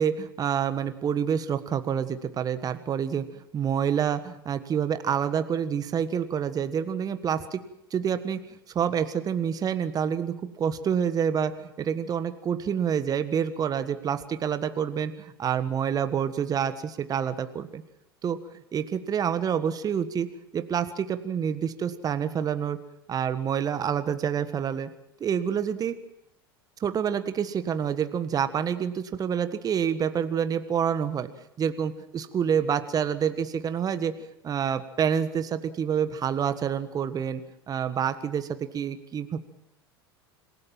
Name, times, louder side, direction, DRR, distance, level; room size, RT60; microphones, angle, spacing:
voice 1, 0.0-7.6 7.9-17.8 18.2-18.4 18.7-20.3 20.5-22.8 23.1-24.9 25.2-25.9 26.8-31.3 31.6-34.1 34.4-37.4 37.7-39.4, right 8 dB, 30° right, 11 dB, 1.5 m, -27 dB
26.5 x 17.5 x 7.6 m, 0.82 s
figure-of-eight pair, 75°, 13 cm